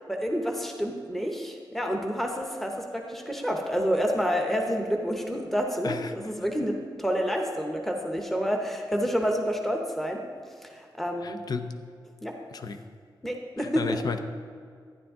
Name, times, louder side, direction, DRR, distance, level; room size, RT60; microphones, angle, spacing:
voice 1, 0.1-10.2 10.6-11.4 12.2-12.3 13.2-14.0, equal, 5° left, 2 dB, 0.9 m, -29 dB
voice 2, 5.8-6.1 11.2-11.8 12.5-12.8 13.8-14.2, left 4 dB, 50° left, 9 dB, 0.6 m, -33 dB
12.0 x 10.0 x 3.6 m, 2.1 s
wide cardioid pair, 170°, 8 cm